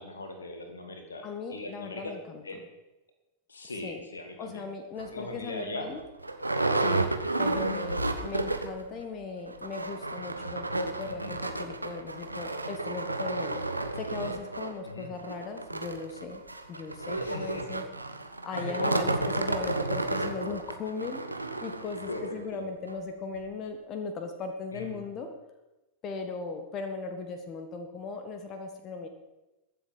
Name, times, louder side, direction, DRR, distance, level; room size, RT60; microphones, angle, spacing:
voice 1, 0.0-2.2 2.4-2.6 3.5-4.7 5.1-5.9 11.1-11.4 14.8-15.1 17.2-17.6 18.5-19.2 22.1-22.6 24.7-25.0, left 2 dB, 75° left, 5 dB, 2.3 m, -39 dB
voice 2, 1.2-2.6 3.8-4.0 4.4-6.0 6.8-7.1 7.4-16.4 16.7-17.9 18.4-25.3 26.0-29.1, left 4 dB, 35° left, 6 dB, 1.6 m, -38 dB
sound 1, 5.0-5.1 5.6-5.7 5.9-8.9 9.1-9.2 9.5-22.3 22.9-23.0 23.3-23.4, right 2 dB, 85° right, 1.0 m, -32 dB
22.0 x 7.7 x 5.5 m, 1.0 s
figure-of-eight pair, 90°, 0 cm